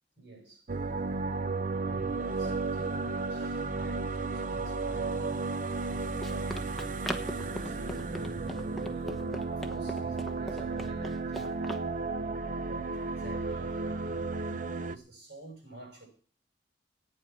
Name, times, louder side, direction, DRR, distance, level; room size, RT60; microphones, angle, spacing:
voice 1, 0.2-0.7 1.8-5.5 5.8-11.6 12.4-16.1, right 2 dB, 75° right, 6.8 m, -48 dB
sound 1, 0.7-15.0, right 3 dB, 45° right, 0.7 m, -33 dB
Run, 5.7-11.9, equal, ahead, 1.0 m, -41 dB
15.0 x 9.4 x 6.1 m
head